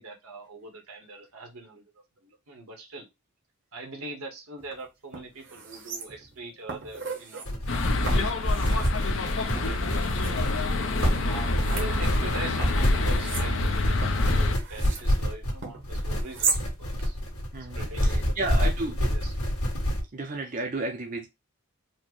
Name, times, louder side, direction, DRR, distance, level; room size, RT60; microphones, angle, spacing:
voice 1, 0.0-3.1 3.7-10.6 11.2-17.2 17.7-18.7 19.0-19.3, right 2 dB, 85° right, 2 dB, 1.3 m, -42 dB
sound 1, 4.6-4.7 5.1-6.4 6.7-7.5 8.1-8.9 9.6-10.3 11.0-12.3 12.6-15.1 15.6-16.6 17.0-17.1, right 4 dB, 55° right, 0.9 m, -36 dB
sound 2, 7.4-20.0, equal, 85° left, 1.5 m, -27 dB
sound 3, 7.7-14.5, left 2 dB, 60° left, 0.6 m, -28 dB
voice 2, 17.5-19.0 20.1-21.3, right 2 dB, 35° right, 3 dB, 0.5 m, -32 dB
4.3 x 2.1 x 3.0 m, 0.22 s
head